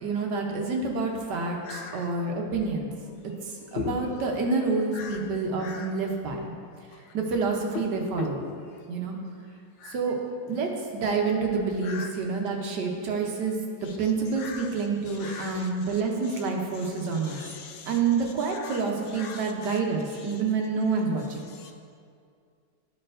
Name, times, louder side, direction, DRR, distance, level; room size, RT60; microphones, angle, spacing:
voice 1, 0.0-2.9 3.7-6.5 7.1-8.4 8.9-9.2 9.9-10.2 10.5-13.6 14.0-17.4 17.9-21.5, right 4 dB, 65° right, 1 dB, 1.3 m, -28 dB
voice 2, 1.7-2.1 3.8-4.0 4.9-5.2 5.6-5.9 7.7-7.9 8.2-8.5 9.8-9.9 11.8-12.1 14.4-14.6 15.2-15.7 17.2-17.9 18.6-18.8 19.2-19.8 21.6-21.7, left 6 dB, 80° left, 3 dB, 1.3 m, -38 dB
12.5 x 4.3 x 2.5 m, 2.3 s
omnidirectional pair, 2.1 m